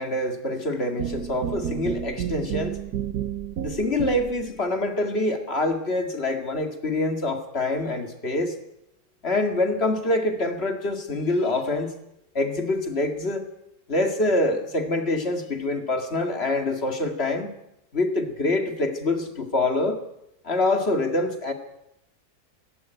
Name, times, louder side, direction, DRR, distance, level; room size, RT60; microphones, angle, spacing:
voice 1, 0.0-2.8 3.6-8.6 9.2-11.9 12.3-13.5 13.9-17.5 17.9-20.0 20.4-21.5, left 2 dB, 40° left, 6 dB, 2.3 m, -25 dB
sound 1, 1.0-4.5, right 9 dB, 80° right, 1.5 m, -31 dB
17.0 x 17.0 x 9.1 m, 0.84 s
omnidirectional pair, 1.7 m